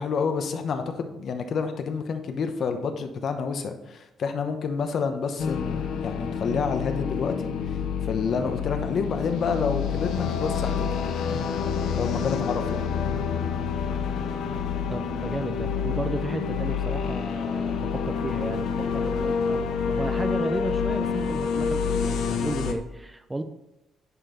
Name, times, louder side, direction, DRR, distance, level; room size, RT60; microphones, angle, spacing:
voice 1, 0.0-7.5 8.0-10.9 12.0-12.8, left 5 dB, 55° left, 7 dB, 1.0 m, -29 dB
sound 1, 5.4-22.7, left 6 dB, 80° left, 0.8 m, -28 dB
voice 2, 14.9-23.4, right 1 dB, 10° right, 9 dB, 0.5 m, -33 dB
10.0 x 4.5 x 4.0 m, 0.92 s
cardioid pair, 115°, 0 cm